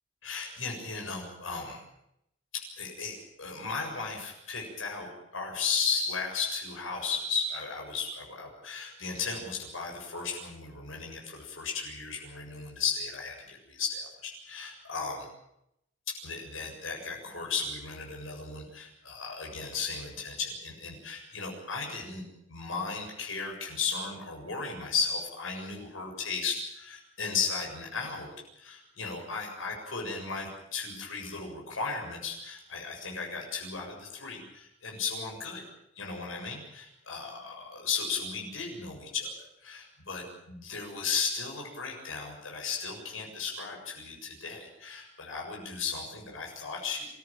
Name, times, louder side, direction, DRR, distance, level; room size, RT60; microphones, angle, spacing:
voice 1, 0.2-1.8 2.5-15.3 16.2-22.2 22.5-28.3 28.6-35.6 36.0-47.1, left 5 dB, 80° left, 0 dB, 7.2 m, -35 dB
27.0 x 14.5 x 9.0 m, 0.80 s
head